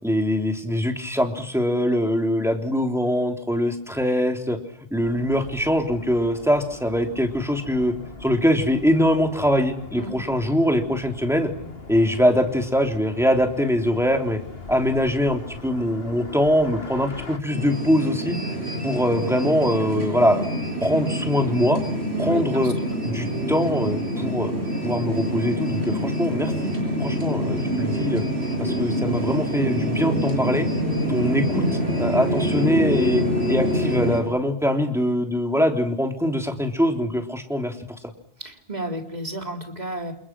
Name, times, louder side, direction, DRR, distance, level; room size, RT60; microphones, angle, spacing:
voice 1, 0.0-4.6 4.9-7.9 8.2-11.5 11.9-14.4 14.7-18.3 18.8-20.5 20.8-21.8 22.2-22.7 23.0-24.5 24.8-26.7 27.0-28.2 28.6-30.7 31.1-31.7 32.0-33.2 33.5-37.7, equal, ahead, 3 dB, 3.4 m, -22 dB
sound 1, 5.0-17.4, left 3 dB, 60° left, 2.5 m, -41 dB
sound 2, 17.5-34.2, equal, 70° right, 7.8 m, -26 dB
voice 2, 22.1-22.7 38.4-40.1, right 2 dB, 40° right, 2 dB, 3.8 m, -32 dB
29.5 x 28.0 x 6.2 m, 0.70 s
omnidirectional pair, 1.1 m